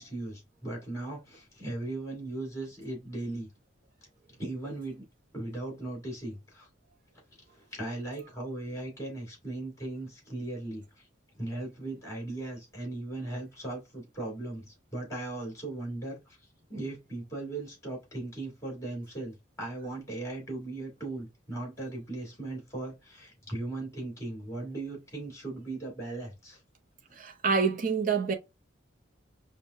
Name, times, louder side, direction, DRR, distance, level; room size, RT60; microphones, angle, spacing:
voice 1, 0.0-3.5 4.4-5.1 5.3-6.7 7.5-11.1 11.4-16.4 16.7-26.6, right 2 dB, 15° left, 2.3 m, -38 dB
voice 2, 27.2-28.3, right 5 dB, 45° right, 0.6 m, -27 dB
5.3 x 2.2 x 2.5 m
head